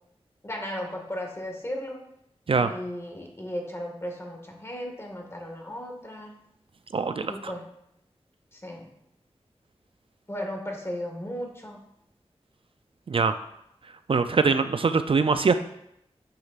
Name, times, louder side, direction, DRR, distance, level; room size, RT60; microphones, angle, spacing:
voice 1, 0.4-2.0 2.6-6.3 7.3-7.7 8.5-8.9 10.3-11.8, equal, 25° left, 1 dB, 1.8 m, -35 dB
voice 2, 6.9-7.3 13.1-13.3 14.1-15.5, right 4 dB, 55° right, 9 dB, 0.4 m, -22 dB
8.7 x 6.3 x 2.5 m, 0.78 s
cardioid pair, 50°, 11 cm